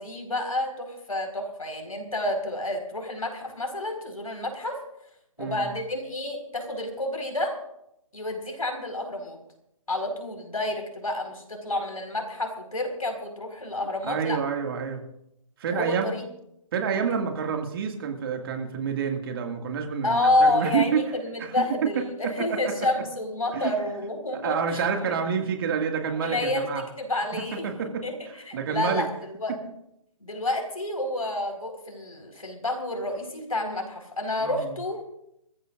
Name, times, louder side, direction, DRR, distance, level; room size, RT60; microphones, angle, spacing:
voice 1, 0.0-4.8 5.4-7.5 8.1-9.4 9.9-14.4 15.7-16.2 20.0-25.2 26.1-26.7 27.0-29.6 30.2-35.0, left 2 dB, 80° left, 4 dB, 4.6 m, -29 dB
voice 2, 5.4-5.7 14.0-15.0 15.6-16.1 16.7-21.0 21.4-22.7 23.5-23.7 24.4-26.8 27.3-28.0 28.5-29.1 34.4-34.8, right 6 dB, 40° right, 4 dB, 2.1 m, -28 dB
25.5 x 14.5 x 2.5 m, 0.78 s
figure-of-eight pair, 135°, 18 cm